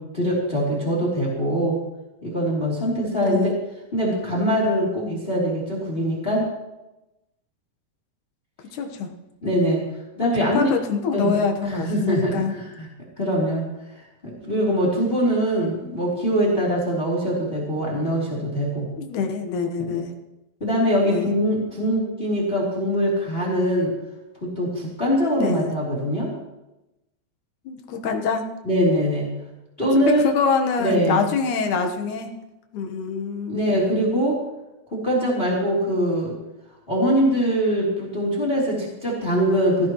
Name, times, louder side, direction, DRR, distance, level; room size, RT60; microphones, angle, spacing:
voice 1, 0.0-1.8 2.2-3.5 3.9-6.5 9.4-9.8 10.2-10.7 11.1-11.4 11.6-12.9 13.2-13.6 13.9-18.9 20.6-23.9 24.6-26.3 28.6-29.3 29.8-30.2 30.8-31.3 33.5-34.4 34.9-36.3 36.9-39.9, equal, 15° left, -3 dB, 2.9 m, -22 dB
voice 2, 3.1-3.5 8.7-9.1 10.2-12.5 19.0-20.1 21.0-21.3 25.4-25.7 27.7-28.4 30.1-32.3 32.7-33.6, left 5 dB, 65° left, 4 dB, 2.4 m, -25 dB
18.5 x 15.0 x 3.0 m, 0.98 s
omnidirectional pair, 4.3 m